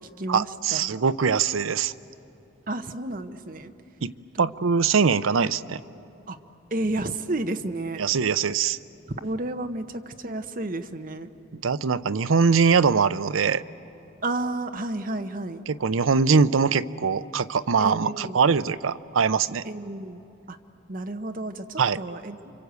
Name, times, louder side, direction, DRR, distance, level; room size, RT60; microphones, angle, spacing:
voice 1, 0.3-1.9 4.0-4.1 4.4-5.8 8.0-8.8 11.5-13.6 15.7-19.6 21.8-22.0, right 5 dB, 90° right, 15 dB, 0.6 m, -22 dB
voice 2, 2.7-3.7 4.3-4.5 5.3-5.5 6.3-6.4 6.7-8.0 9.2-11.3 14.2-15.6 17.8-18.4 19.6-20.2 20.5-20.6 20.9-22.4, right 2 dB, 45° right, 7 dB, 1.0 m, -31 dB
29.5 x 25.0 x 8.2 m, 2.8 s
head